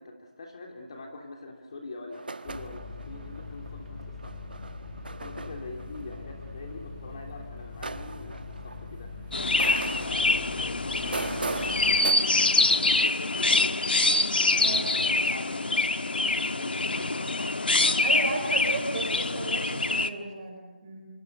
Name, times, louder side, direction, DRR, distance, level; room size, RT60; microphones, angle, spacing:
voice 1, 0.0-4.4 5.2-9.1 9.8-12.3 12.7-13.8 14.6-15.9 16.2-18.2, left 2 dB, 30° left, 1 dB, 3.3 m, -44 dB
sound 1, 2.1-7.1 7.6-9.3 9.6-12.1, right 3 dB, 65° right, 1.4 m, -39 dB
sound 2, 2.4-12.0, left 4 dB, 15° left, 4.6 m, -42 dB
Chirp tweet, 9.3-20.1, left 2 dB, 75° left, 1.4 m, -25 dB
voice 2, 18.0-21.1, right 3 dB, 20° right, 2 dB, 4.7 m, -34 dB
27.0 x 25.5 x 6.8 m, 1.2 s
figure-of-eight pair, 170°, 5 cm